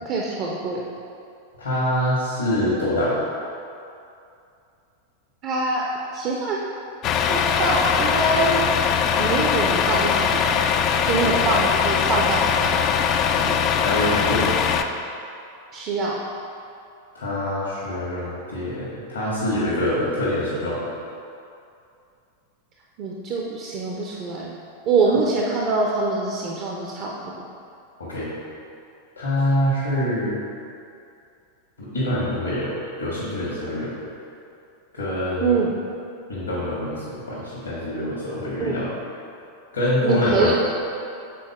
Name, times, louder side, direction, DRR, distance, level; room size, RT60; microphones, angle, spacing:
voice 1, 0.0-0.8 5.4-5.8 6.1-6.6 7.3-8.6 9.2-10.6 11.0-12.9 15.7-16.2 23.0-24.6 24.9-27.1 35.4-35.7 38.6-38.8 40.0-40.5, right 3 dB, 40° right, -2 dB, 0.5 m, -24 dB
voice 2, 1.6-3.2 11.1-11.4 13.3-14.5 17.1-20.8 28.0-28.3 29.2-30.3 31.8-33.9 34.9-35.5 36.3-38.9 39.7-40.5, left 1 dB, 75° left, -8 dB, 1.4 m, -25 dB
Truck, 7.0-14.8, left 7 dB, 35° left, 0.3 m, -21 dB
6.9 x 4.0 x 3.6 m, 2.6 s
figure-of-eight pair, 90°, 0 cm